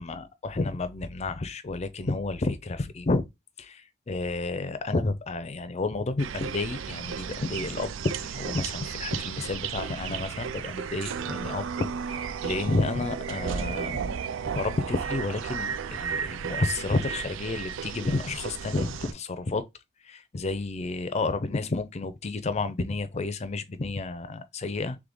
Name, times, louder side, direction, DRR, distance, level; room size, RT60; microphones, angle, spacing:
voice 1, 0.0-3.2 3.6-7.9 8.2-11.7 12.1-19.6 20.1-25.0, left 3 dB, 35° left, 0.5 m, -31 dB
sound 1, 6.2-19.1, right 7 dB, 75° right, 0.4 m, -34 dB
3.5 x 3.2 x 3.8 m
head